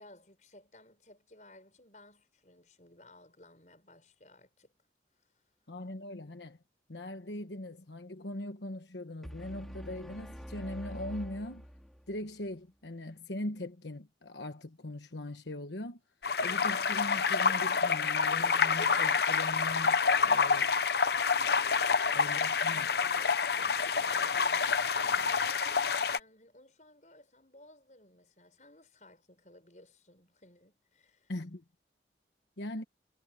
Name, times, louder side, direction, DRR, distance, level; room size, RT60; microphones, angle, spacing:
voice 1, 0.0-4.7 18.6-18.8 21.0-22.4 22.7-31.3, left 1 dB, 45° left, 6.9 m, -58 dB
voice 2, 5.7-6.6 6.9-11.6 12.1-16.0 16.4-20.7 22.1-22.9 31.3-31.6 32.6-32.8, left 1 dB, 90° left, 1.3 m, -40 dB
sound 1, 9.2-12.3, equal, ahead, 4.7 m, -45 dB
sound 2, 16.2-26.2, left 5 dB, 65° left, 0.9 m, -28 dB
head